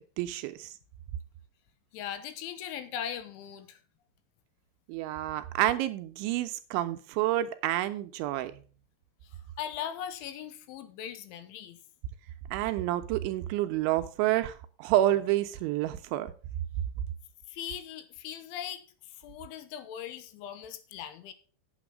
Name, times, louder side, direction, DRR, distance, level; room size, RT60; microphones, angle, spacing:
voice 1, 0.2-0.7 4.9-8.5 12.5-16.3, right 14 dB, 80° right, 10 dB, 2.8 m, -29 dB
voice 2, 1.9-3.8 9.2-11.8 17.5-21.3, left 9 dB, 80° left, 10 dB, 3.3 m, -39 dB
8.8 x 7.7 x 6.1 m, 0.39 s
omnidirectional pair, 5.6 m